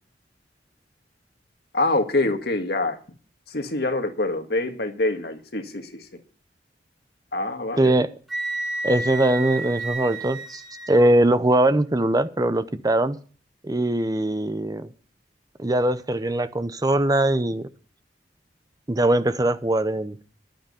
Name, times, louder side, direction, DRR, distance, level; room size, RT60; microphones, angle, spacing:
voice 1, 1.7-3.0 3.5-6.1 7.3-7.9, left 2 dB, 65° left, 6 dB, 1.9 m, -25 dB
voice 2, 7.8-8.1 8.8-10.6 10.9-13.2 13.6-14.9 15.6-17.7 18.9-20.2, right 1 dB, 20° right, 13 dB, 0.7 m, -21 dB
Wind instrument woodwind instrument, 8.3-11.1, right 2 dB, ahead, 1.7 m, -31 dB
11.5 x 9.2 x 6.8 m, 0.40 s
head